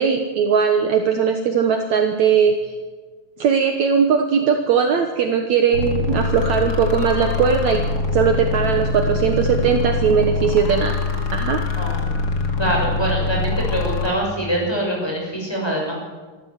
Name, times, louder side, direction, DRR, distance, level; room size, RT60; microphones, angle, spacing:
voice 1, 0.0-2.7 3.4-7.8 8.1-11.0 11.3-11.6, right 6 dB, 65° right, 4 dB, 2.4 m, -19 dB
sound 1, 5.7-14.1, left 3 dB, 30° left, 2.3 m, -23 dB
voice 2, 11.8-12.1 12.6-15.9, right 1 dB, 5° left, -2 dB, 6.8 m, -24 dB
25.5 x 14.0 x 8.2 m, 1.4 s
omnidirectional pair, 4.0 m